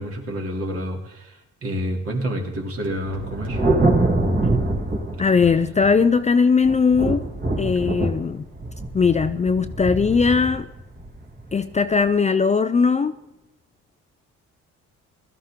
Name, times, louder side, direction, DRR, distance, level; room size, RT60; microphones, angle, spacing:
voice 1, 0.0-3.6, equal, 50° right, 2.9 m, -29 dB
sound 1, 2.5-5.1, right 1 dB, 70° right, 3.3 m, -42 dB
Thunder, 3.1-6.2 6.6-12.0, right 2 dB, 30° right, 2.3 m, -24 dB
voice 2, 5.2-7.3 7.6-8.4 8.9-10.7 11.5-13.2, left 5 dB, 25° left, 0.5 m, -19 dB
16.5 x 13.0 x 3.7 m
cardioid pair, 90°, 30 cm